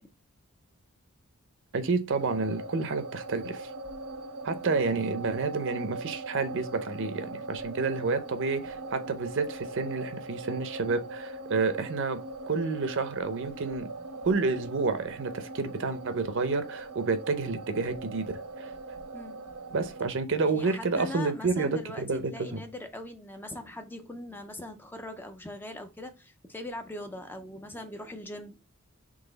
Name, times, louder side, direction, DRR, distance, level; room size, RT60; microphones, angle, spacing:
voice 1, 1.7-3.7 4.4-12.2 12.5-13.9 14.2-18.7 19.7-22.6, right 4 dB, 60° right, 0.6 m, -29 dB
sound 1, 2.1-20.1, right 2 dB, 90° right, 1.0 m, -40 dB
voice 2, 20.4-28.6, left 1 dB, 10° left, 0.4 m, -41 dB
3.9 x 3.1 x 3.9 m
head